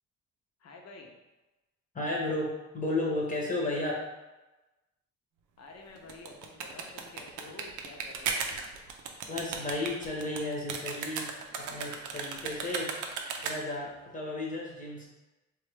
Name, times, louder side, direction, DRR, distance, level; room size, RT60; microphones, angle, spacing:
voice 1, 0.6-1.1 5.6-8.7, left 3 dB, 55° left, 1 dB, 0.7 m, -49 dB
voice 2, 1.9-4.0 9.3-11.3 11.6-12.9 13.4-15.1, left 2 dB, 25° left, -3 dB, 0.8 m, -33 dB
sound 1, 6.0-13.8, right 5 dB, 80° right, 0.5 m, -36 dB
3.3 x 2.3 x 3.1 m, 1.1 s
cardioid pair, 90°, 30 cm